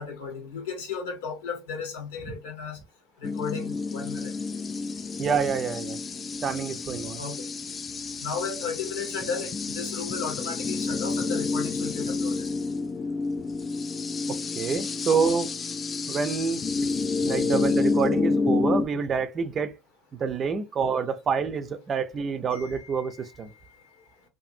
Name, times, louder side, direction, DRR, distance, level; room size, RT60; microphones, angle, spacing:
voice 1, 0.0-2.8 3.2-4.3 5.2-5.3 7.2-7.5 8.2-12.4 22.5-23.4, left 5 dB, 80° left, 1.1 m, -35 dB
sound 1, 3.2-18.8, left 4 dB, 30° left, 0.3 m, -29 dB
voice 2, 5.2-6.0 6.4-7.2 14.3-15.5 16.1-16.6 17.2-19.7 20.2-23.5, right 5 dB, 35° right, 0.5 m, -27 dB
2.6 x 2.6 x 2.5 m
hypercardioid pair, 80°, 0 cm